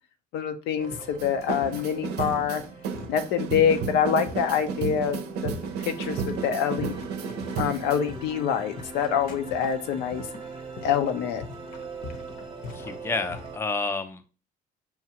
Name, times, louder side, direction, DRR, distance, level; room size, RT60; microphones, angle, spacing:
voice 1, 0.3-2.6 3.1-5.5 5.8-7.0 7.5-10.3 10.8-11.4, left 8 dB, 85° left, 7 dB, 0.6 m, -26 dB
sound 1, 0.8-13.5, left 4 dB, 55° left, 0.8 m, -45 dB
sound 2, 0.8-13.6, right 3 dB, 30° right, 0.7 m, -43 dB
sound 3, 1.2-8.0, right 6 dB, 80° right, 0.6 m, -33 dB
voice 2, 12.7-14.3, left 3 dB, 15° left, 8 dB, 0.4 m, -30 dB
5.7 x 2.4 x 2.9 m, 0.34 s
cardioid pair, 110°, 17 cm